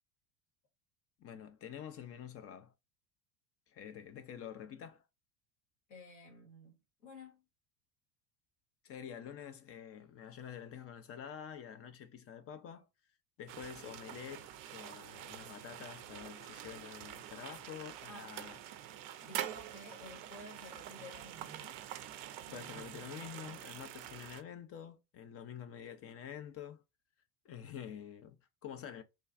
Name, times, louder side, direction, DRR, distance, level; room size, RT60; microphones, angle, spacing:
voice 1, 1.2-2.7 3.7-5.0 8.8-12.9 13.4-18.6 22.4-26.8 27.4-29.0, left 9 dB, 30° left, 0.5 m, -48 dB
voice 2, 5.9-7.4 18.1-18.3 19.2-21.8 22.4-23.0, left 2 dB, 85° left, 1.3 m, -53 dB
sound 1, 13.5-24.4, right 12 dB, 40° right, 0.5 m, -46 dB
3.4 x 2.3 x 2.3 m
hypercardioid pair, 75°, 50 cm